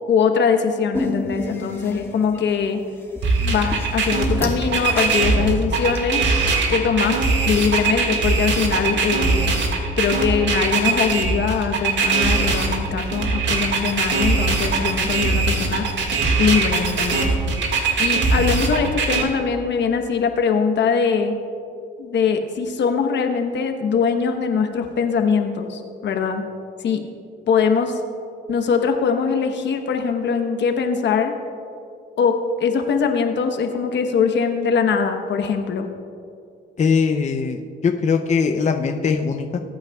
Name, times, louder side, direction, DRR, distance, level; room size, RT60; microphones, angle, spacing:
voice 1, 0.1-2.8 3.4-6.2 6.7-9.4 10.0-15.9 16.4-17.3 18.0-21.3 22.0-26.4 26.8-27.0 27.5-28.0 28.5-31.3 32.2-35.9, left 6 dB, 65° left, 6 dB, 1.1 m, -22 dB
sound 1, 0.9-6.0, left 2 dB, 10° left, 1.5 m, -31 dB
sound 2, 3.2-19.2, right 4 dB, 65° right, 1.8 m, -21 dB
voice 2, 36.8-39.6, left 5 dB, 35° left, 4 dB, 0.6 m, -21 dB
20.0 x 8.9 x 2.3 m, 2.5 s
cardioid pair, 90°, 20 cm